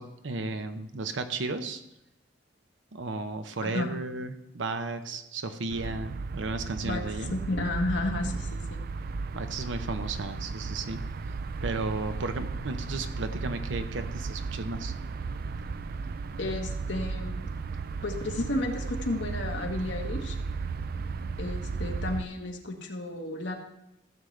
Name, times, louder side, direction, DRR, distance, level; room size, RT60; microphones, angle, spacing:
voice 1, 0.0-1.8 2.9-7.3 9.3-11.0 11.6-14.9, right 3 dB, 85° right, 9 dB, 0.8 m, -34 dB
voice 2, 3.6-3.9 6.8-7.0 7.3-8.8 16.4-17.5 18.0-20.4 21.4-23.5, left 2 dB, 70° left, 2 dB, 1.4 m, -32 dB
sound 1, 5.7-22.2, right 4 dB, 55° right, 0.4 m, -35 dB
15.0 x 7.8 x 3.3 m, 0.86 s
head